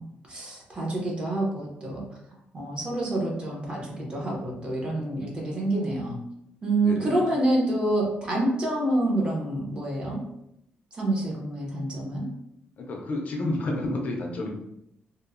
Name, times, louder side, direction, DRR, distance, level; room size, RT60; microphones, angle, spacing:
voice 1, 0.0-2.0 2.5-6.2 6.6-10.2 11.0-12.2, right 1 dB, 25° right, -2 dB, 0.6 m, -27 dB
voice 2, 6.8-7.3 12.8-14.5, left 2 dB, 45° left, 1 dB, 0.4 m, -30 dB
2.9 x 2.0 x 2.4 m, 0.78 s
cardioid pair, 155°, 4 cm